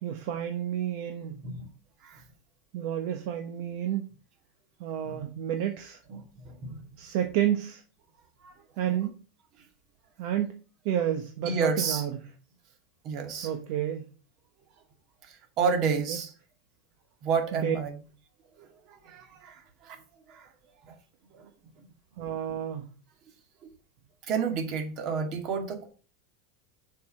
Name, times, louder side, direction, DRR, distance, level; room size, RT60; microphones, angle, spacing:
voice 1, 0.0-1.4 2.7-4.0 4.8-6.0 7.0-7.8 8.8-9.2 10.2-12.2 13.4-14.1 15.8-16.2 17.5-17.8 22.2-22.9, right 10 dB, 60° right, 5 dB, 1.1 m, -30 dB
voice 2, 6.1-6.8 8.4-8.5 11.4-12.0 13.0-13.5 15.2-16.3 17.2-18.0 18.6-20.0 20.3-20.5 20.8-20.9 21.3-21.5 24.3-25.9, right 5 dB, 40° right, 5 dB, 2.1 m, -31 dB
6.8 x 4.9 x 6.3 m, 0.37 s
supercardioid pair, 145°, 0 cm